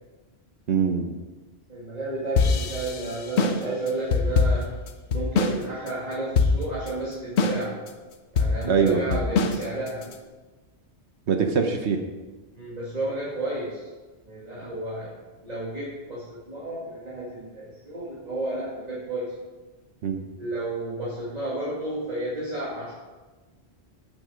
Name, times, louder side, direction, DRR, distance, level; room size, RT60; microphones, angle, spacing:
voice 1, 0.7-1.1 8.6-9.2 11.3-12.0 20.0-20.2, right 6 dB, 75° right, 5 dB, 1.2 m, -23 dB
voice 2, 1.7-4.7 5.1-7.8 8.3-10.2 12.6-13.9 14.3-15.1 15.4-19.3 20.3-22.9, right 1 dB, 40° right, -8 dB, 2.5 m, -32 dB
sound 1, 2.4-5.6 5.9-6.0 6.3-6.9 7.4-7.9 8.4-10.1, left 4 dB, 75° left, 1.1 m, -23 dB
9.3 x 8.7 x 5.1 m, 1.2 s
omnidirectional pair, 1.1 m